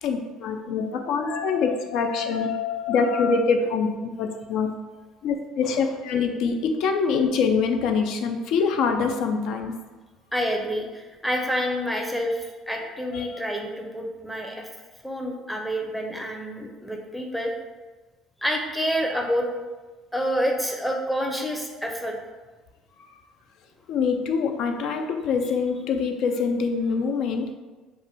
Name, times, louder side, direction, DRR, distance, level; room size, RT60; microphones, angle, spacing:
voice 1, 0.0-4.7 5.2-9.7 12.7-12.8 13.1-13.3 23.9-27.5, left 5 dB, 65° left, 5 dB, 0.3 m, -24 dB
voice 2, 10.3-14.7 15.0-17.5 18.4-19.5 20.1-22.2, equal, ahead, 1 dB, 0.6 m, -28 dB
2.4 x 2.2 x 3.4 m, 1.3 s
hypercardioid pair, 65°, 0 cm